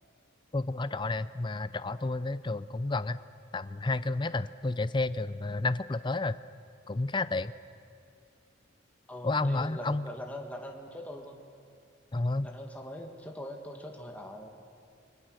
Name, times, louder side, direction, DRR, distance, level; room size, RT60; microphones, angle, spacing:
voice 1, 0.5-3.2 3.5-6.4 6.9-7.5 9.2-10.1 12.1-12.5, left 2 dB, 25° left, 14 dB, 0.5 m, -31 dB
voice 2, 9.1-11.4 12.4-14.6, left 1 dB, 5° left, 1 dB, 1.9 m, -42 dB
29.5 x 22.5 x 6.5 m, 2.4 s
head